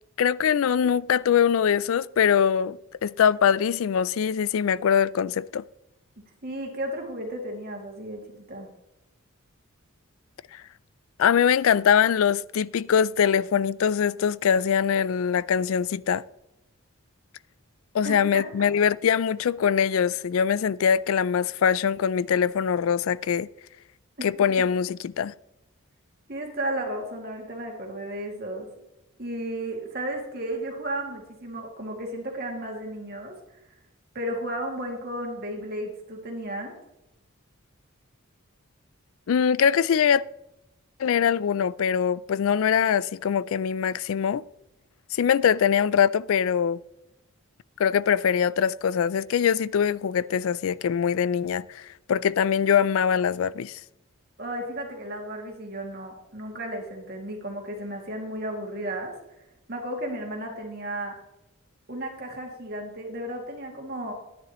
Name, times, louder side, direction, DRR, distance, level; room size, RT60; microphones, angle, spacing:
voice 1, 0.2-5.6 10.5-10.6 11.2-16.2 17.9-23.5 24.2-25.3 39.3-40.3 41.0-44.4 45.1-46.8 47.8-53.8, left 7 dB, 70° left, 0.3 m, -23 dB
voice 2, 6.2-8.7 18.0-18.7 24.2-24.3 26.3-28.7 29.2-33.4 34.1-36.7 54.4-59.1 59.7-61.2 61.9-64.1, right 1 dB, 45° right, 2.3 m, -34 dB
11.0 x 10.0 x 3.0 m
head